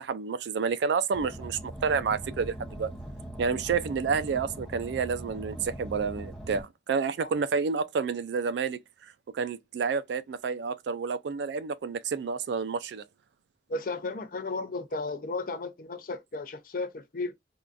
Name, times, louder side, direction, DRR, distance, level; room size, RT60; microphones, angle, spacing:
voice 1, 0.0-2.9 3.4-8.8 9.3-13.0, right 5 dB, 70° right, 0.3 m, -29 dB
Car, 1.1-6.6, right 1 dB, 5° left, 0.6 m, -41 dB
voice 2, 13.7-17.3, left 3 dB, 50° left, 0.5 m, -34 dB
3.6 x 2.3 x 2.4 m
head